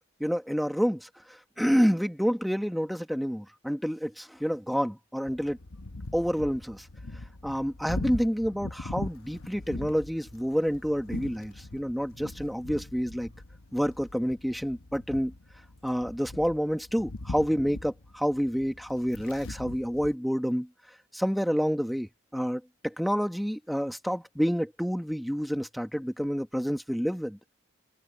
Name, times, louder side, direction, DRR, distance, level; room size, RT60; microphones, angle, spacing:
voice 1, 0.2-1.1 1.6-5.6 6.1-6.9 7.4-13.3 13.7-15.3 15.8-20.7 21.1-27.4, equal, ahead, 1.4 m, -28 dB
sound 1, 5.3-20.1, left 2 dB, 90° left, 1.1 m, -41 dB
open air
head